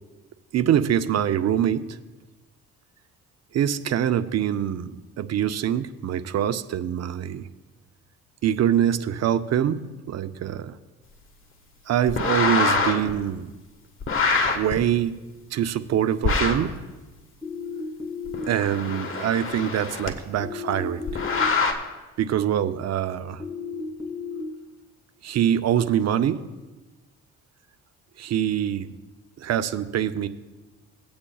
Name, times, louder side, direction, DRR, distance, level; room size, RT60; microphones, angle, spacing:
voice 1, 0.5-2.0 3.5-7.5 8.4-10.8 11.9-13.5 14.5-15.2 15.5-16.8 18.5-21.1 22.2-23.4 25.2-26.5 28.2-28.9 29.4-30.3, right 10 dB, 60° right, 11 dB, 0.6 m, -24 dB
sound 1, 12.1-13.1 14.0-14.7 16.2-16.7 18.3-20.1 21.1-21.7, left 4 dB, 45° left, 1.4 m, -24 dB
sound 2, 17.4-18.4 20.4-21.4 23.4-24.4, left 6 dB, ahead, 3.1 m, -34 dB
18.0 x 8.6 x 2.3 m, 1.2 s
cardioid pair, 90°, 30 cm